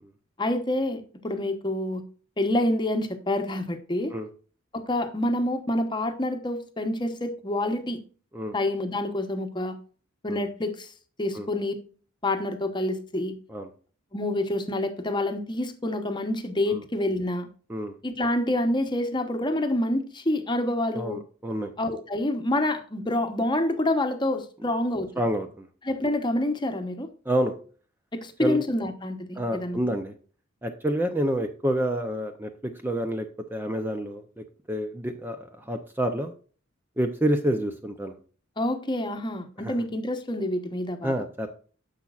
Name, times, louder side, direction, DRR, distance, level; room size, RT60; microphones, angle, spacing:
voice 1, 0.4-2.0 2.4-4.1 4.7-8.0 8.5-9.7 10.2-10.9 11.2-11.7 12.2-13.3 14.1-17.5 18.0-21.2 21.8-25.1 25.8-27.1 28.1-29.8 38.6-41.1, left 1 dB, 20° left, 1.0 m, -27 dB
voice 2, 20.9-21.7 25.2-25.7 27.3-27.6 28.4-28.6 29.4-30.1 30.6-36.3 37.0-38.2 39.6-39.8 41.0-41.5, right 1 dB, 10° right, 0.6 m, -28 dB
10.5 x 7.1 x 2.4 m
head